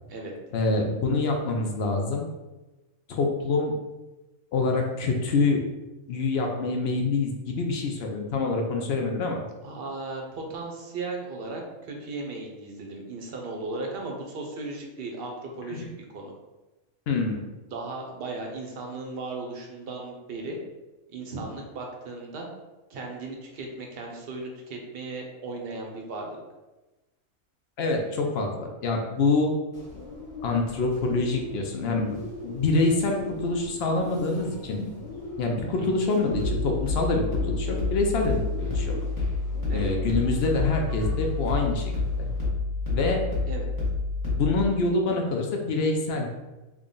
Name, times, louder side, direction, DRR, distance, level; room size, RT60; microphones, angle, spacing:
voice 1, 0.5-2.3 3.1-3.7 4.5-5.6 6.1-9.4 15.7-15.9 17.1-17.5 27.8-29.6 30.4-32.2 32.4-34.9 35.4-38.9 39.7-41.9 42.2-42.3 42.9-43.3 44.2-46.3, left 3 dB, 65° left, 2 dB, 0.7 m, -26 dB
voice 2, 9.6-16.3 17.7-20.6 21.1-22.5 22.9-26.4 35.8-35.9 39.7-39.9 43.5-43.6, right 3 dB, 55° right, 1 dB, 0.8 m, -36 dB
Bird, 29.7-42.5, left 2 dB, 35° left, 1.2 m, -40 dB
sound 1, 36.3-44.5, left 3 dB, 15° left, 1.2 m, -28 dB
3.6 x 2.3 x 3.7 m, 1.1 s
omnidirectional pair, 1.5 m